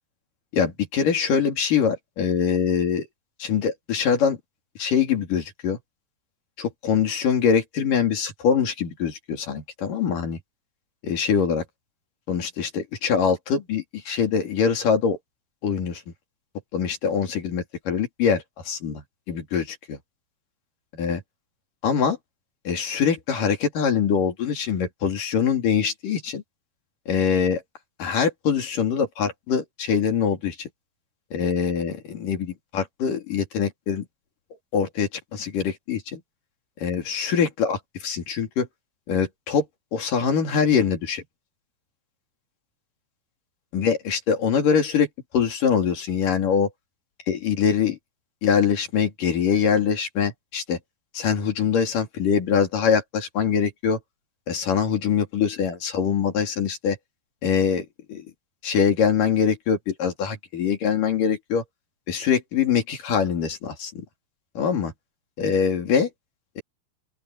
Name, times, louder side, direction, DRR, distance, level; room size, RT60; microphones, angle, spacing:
voice 1, 0.5-3.1 3.4-4.4 4.8-5.8 6.6-10.4 11.0-11.6 12.3-15.2 15.6-16.0 16.7-20.0 20.9-21.2 21.8-22.2 22.7-26.4 27.1-27.6 28.0-30.7 31.3-34.1 34.7-36.2 36.8-38.7 39.1-39.7 39.9-41.2 43.7-45.1 45.3-46.7 47.3-48.0 48.4-50.8 51.1-54.0 54.5-57.0 57.4-58.3 58.6-61.6 62.1-64.0 64.6-64.9 65.4-66.1 66.6-66.7, left 7 dB, 60° left, 4.4 m, -23 dB
open air
omnidirectional pair, 4.4 m